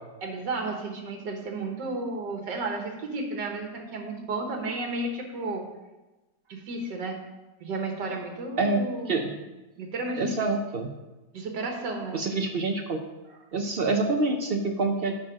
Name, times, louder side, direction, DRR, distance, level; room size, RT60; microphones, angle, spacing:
voice 1, 0.2-5.7 6.5-7.2 7.6-9.3 9.8-10.3 11.3-12.2, right 2 dB, 85° right, 3 dB, 1.9 m, -33 dB
voice 2, 8.6-9.3 10.2-10.9 12.1-13.0 13.5-15.2, right 3 dB, 65° right, 4 dB, 0.5 m, -26 dB
9.8 x 4.1 x 6.0 m, 1.1 s
omnidirectional pair, 1.8 m